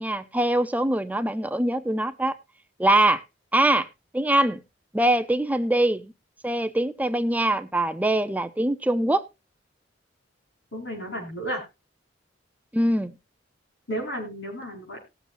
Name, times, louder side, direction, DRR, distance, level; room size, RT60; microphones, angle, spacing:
voice 1, 0.0-2.4 2.8-3.2 3.5-3.9 4.1-4.6 4.9-6.1 6.4-9.3 12.7-13.1, right 1 dB, 10° right, 0.5 m, -23 dB
voice 2, 10.7-11.6 13.9-15.0, right 1 dB, 80° left, 5.5 m, -32 dB
19.0 x 7.3 x 2.6 m
head